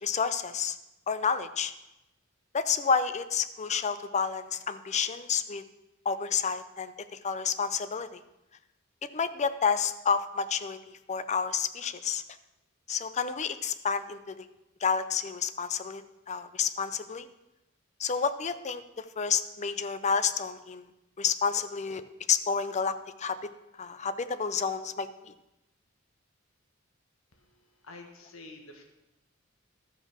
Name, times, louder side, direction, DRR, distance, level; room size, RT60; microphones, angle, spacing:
voice 1, 0.0-0.8 1.1-1.7 2.5-5.6 6.1-8.2 9.1-12.2 12.9-14.5 14.8-17.3 18.0-20.9 21.2-22.0 22.3-23.4 23.8-25.3, left 6 dB, 35° left, 12 dB, 0.5 m, -30 dB
voice 2, 27.3-28.8, left 2 dB, 80° left, 3 dB, 1.5 m, -49 dB
13.0 x 5.4 x 6.1 m, 0.94 s
head